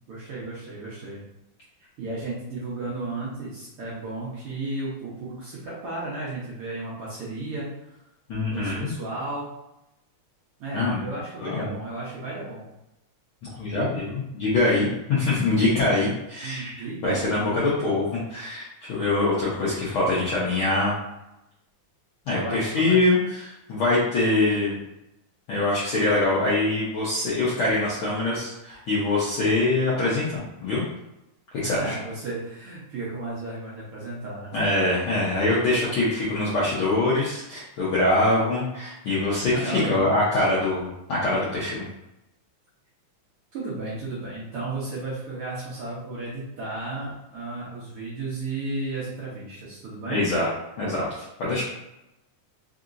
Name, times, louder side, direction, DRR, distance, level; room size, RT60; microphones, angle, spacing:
voice 1, 0.1-1.2 1.8-7.8 8.5-9.5 10.6-12.6 16.4-17.9 22.3-23.0 31.6-34.5 39.5-40.1 43.5-50.3, right 2 dB, 70° right, -8 dB, 1.4 m, -34 dB
voice 2, 8.3-8.9 10.7-11.0 11.4-11.7 13.5-21.0 22.3-24.8 25.5-30.8 31.6-31.9 34.5-41.8 50.1-50.5 50.8-51.6, left 2 dB, 70° left, -8 dB, 1.2 m, -24 dB
4.7 x 2.8 x 2.5 m, 0.90 s
omnidirectional pair, 3.4 m